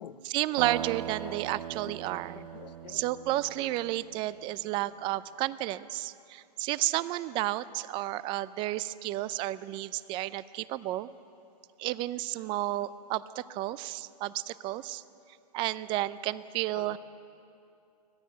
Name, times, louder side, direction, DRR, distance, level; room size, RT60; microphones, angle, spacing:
voice 1, 0.3-2.4 2.9-11.1 11.8-15.0 15.5-17.0, right 16 dB, 25° right, 17 dB, 0.5 m, -32 dB
sound 1, 0.6-4.4, right 10 dB, 80° right, 0.8 m, -40 dB
voice 2, 2.1-3.0 3.3-3.4 16.7-17.0, left 9 dB, 75° left, 12 dB, 1.1 m, -47 dB
25.5 x 17.5 x 9.1 m, 2.5 s
hypercardioid pair, 155°, 21 cm